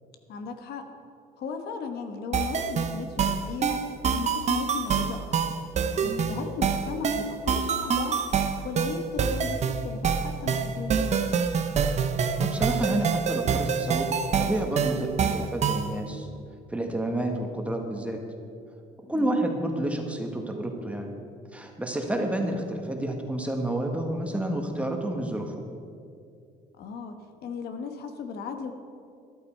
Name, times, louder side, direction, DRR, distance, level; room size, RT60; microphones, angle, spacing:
voice 1, 0.3-0.8 1.4-3.8 4.1-5.6 6.0-11.4 19.1-19.4 26.8-27.1 27.4-28.7, left 5 dB, 70° left, 6 dB, 1.2 m, -36 dB
sound 1, 2.3-15.9, right 6 dB, 40° right, 0.8 m, -26 dB
voice 2, 12.4-14.1 14.3-16.3 16.7-18.2 19.1-21.1 21.5-25.5, right 1 dB, 10° right, 2 dB, 1.5 m, -29 dB
13.0 x 11.5 x 4.5 m, 2.5 s
cardioid pair, 110°, 17 cm